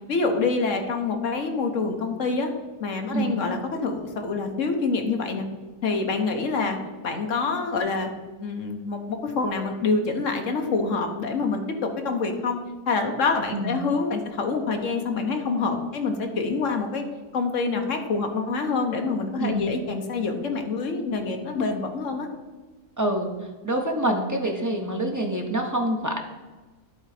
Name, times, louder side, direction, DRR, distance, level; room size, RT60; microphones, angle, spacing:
voice 1, 0.1-2.5 2.8-5.5 5.8-6.8 7.0-8.1 8.4-12.6 12.9-17.0 17.3-22.3, left 4 dB, 55° left, 5 dB, 1.2 m, -26 dB
voice 2, 13.5-13.8 19.4-19.7 23.0-23.3 23.6-26.2, right 1 dB, 20° right, 1 dB, 0.5 m, -26 dB
11.0 x 3.9 x 4.9 m, 1.2 s
omnidirectional pair, 1.6 m